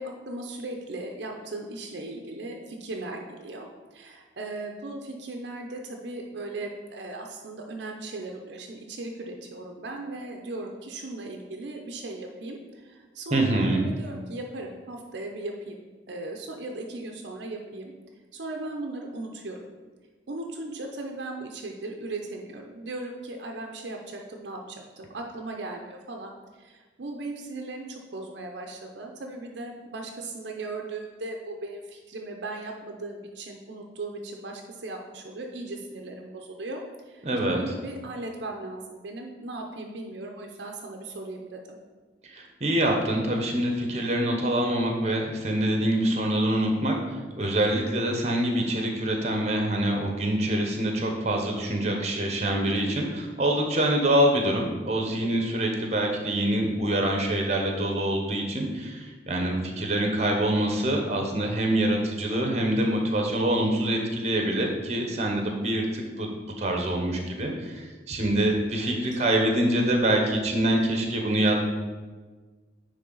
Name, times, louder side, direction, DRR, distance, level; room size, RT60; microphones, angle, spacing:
voice 1, 0.0-15.8 16.1-17.9 18.3-19.6 20.3-26.3 26.6-36.8 37.1-41.8 55.0-55.5 68.8-68.9, right 2 dB, 65° right, 2 dB, 0.6 m, -37 dB
voice 2, 13.3-13.8 37.2-37.6 42.3-47.0 47.4-66.3 66.6-71.6, right 1 dB, 35° right, 2 dB, 0.8 m, -25 dB
9.5 x 3.4 x 3.9 m, 1.4 s
head